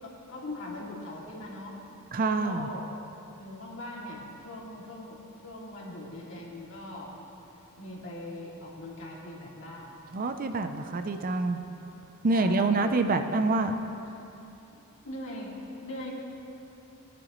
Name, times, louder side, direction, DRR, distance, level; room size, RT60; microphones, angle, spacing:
voice 1, 0.0-1.8 2.4-2.8 3.3-7.1 7.8-10.0 12.3-12.9 14.7-16.1, left 1 dB, 60° left, -5 dB, 2.5 m, -41 dB
voice 2, 2.1-2.7 10.1-11.6 12.2-13.8, right 3 dB, 40° right, 8 dB, 0.5 m, -26 dB
18.5 x 10.5 x 3.1 m, 2.9 s
head